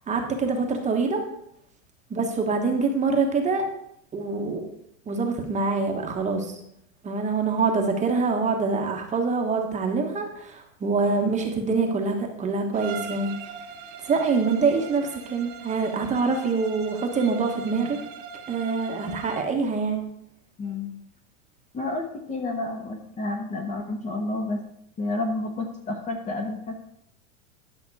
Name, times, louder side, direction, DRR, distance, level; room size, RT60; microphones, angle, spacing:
voice 1, 0.1-1.2 2.1-3.7 4.1-4.6 5.1-6.5 7.0-13.3 14.0-18.0 18.5-20.0, right 4 dB, 20° right, 3 dB, 1.2 m, -25 dB
Bowed string instrument, 12.7-19.5, right 6 dB, 45° right, 1.3 m, -41 dB
voice 2, 20.6-20.9 21.7-24.6 25.0-26.8, left 2 dB, 20° left, 3 dB, 1.0 m, -30 dB
11.0 x 5.9 x 4.7 m, 0.74 s
supercardioid pair, 140°, 40 cm